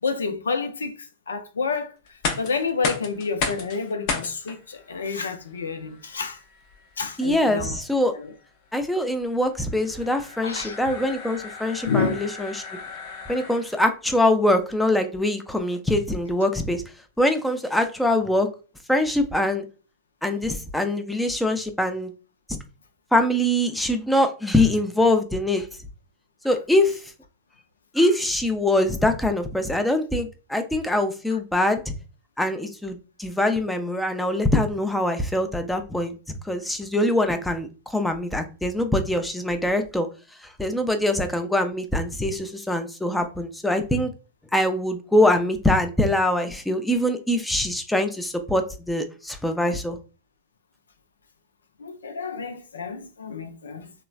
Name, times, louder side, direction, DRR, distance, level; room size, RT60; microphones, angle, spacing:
voice 1, 0.0-6.4 7.0-7.8 8.1-8.3 10.4-10.8 11.9-12.2 31.3-31.4 51.8-53.9, left 5 dB, 90° left, 0.4 m, -29 dB
sound 1, 2.1-13.9, left 4 dB, 55° left, 0.6 m, -35 dB
voice 2, 7.2-8.1 8.7-12.6 13.3-16.8 17.2-18.5 18.9-19.6 20.2-22.1 22.5-22.6 23.1-25.7 26.4-27.0 27.9-31.9 32.4-36.2 36.4-40.1 40.6-44.1 44.5-50.0, left 1 dB, 5° left, 0.5 m, -23 dB
3.1 x 2.0 x 2.3 m
hypercardioid pair, 105°, 0 cm